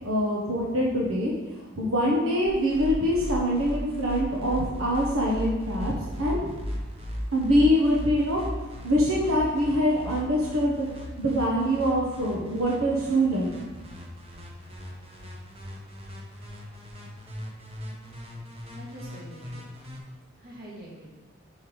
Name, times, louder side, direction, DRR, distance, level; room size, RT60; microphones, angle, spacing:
voice 1, 0.0-1.3 1.8-6.6 7.3-8.4 8.8-10.9 11.2-13.5, equal, 85° right, -3 dB, 1.0 m, -24 dB
sound 1, 2.5-20.0, equal, 30° right, 1.0 m, -38 dB
voice 2, 18.7-19.7 20.4-21.1, right 1 dB, 50° right, -6 dB, 2.2 m, -44 dB
5.6 x 5.2 x 4.7 m, 1.2 s
head